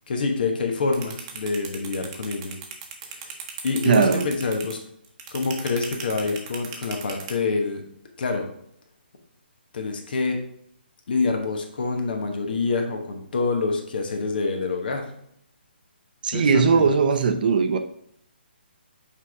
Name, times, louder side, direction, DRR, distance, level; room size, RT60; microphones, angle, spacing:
voice 1, 0.1-2.6 3.1-3.3 3.6-4.8 5.3-7.8 8.2-8.5 9.7-10.4 11.1-15.1 16.3-16.9, left 4 dB, 55° left, 3 dB, 1.2 m, -26 dB
sound 1, 0.9-7.3, right 7 dB, 25° right, 0.9 m, -36 dB
voice 2, 3.9-4.3 16.2-17.8, right 5 dB, 50° right, 7 dB, 0.6 m, -19 dB
5.7 x 4.8 x 3.5 m, 0.71 s
hypercardioid pair, 150°, 6 cm